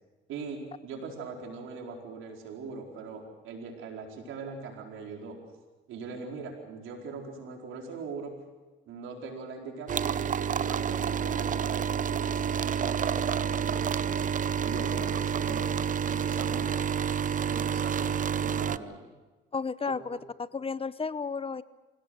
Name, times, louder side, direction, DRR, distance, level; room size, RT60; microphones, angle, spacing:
voice 1, 0.3-5.4 5.9-8.4 8.9-14.2 14.6-16.9 17.4-19.1 19.9-20.0, right 4 dB, 90° right, 2 dB, 4.6 m, -41 dB
sound 1, 9.9-18.8, right 7 dB, 40° right, 0.7 m, -29 dB
voice 2, 19.5-21.6, left 5 dB, 30° left, 17 dB, 0.8 m, -33 dB
26.0 x 17.0 x 7.9 m, 1.2 s
cardioid pair, 90°, 20 cm